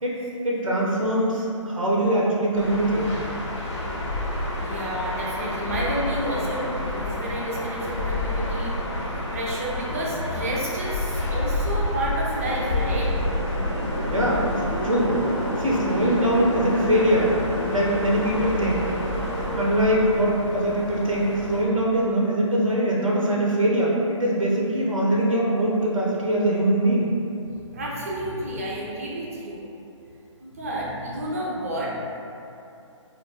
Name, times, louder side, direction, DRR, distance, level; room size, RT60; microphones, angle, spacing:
voice 1, 0.0-3.1 14.1-15.2 15.6-17.3 17.7-18.8 19.5-27.1, right 1 dB, 90° right, -4 dB, 0.5 m, -22 dB
sound 1, 2.6-21.6, left 1 dB, 60° left, 0.6 m, -29 dB
voice 2, 4.6-13.1 27.5-29.7 30.4-32.0, right 1 dB, 30° right, -5 dB, 0.4 m, -31 dB
sound 2, 12.4-19.5, equal, 20° left, 0.7 m, -31 dB
2.3 x 2.1 x 3.1 m, 2.7 s
figure-of-eight pair, 140°, 17 cm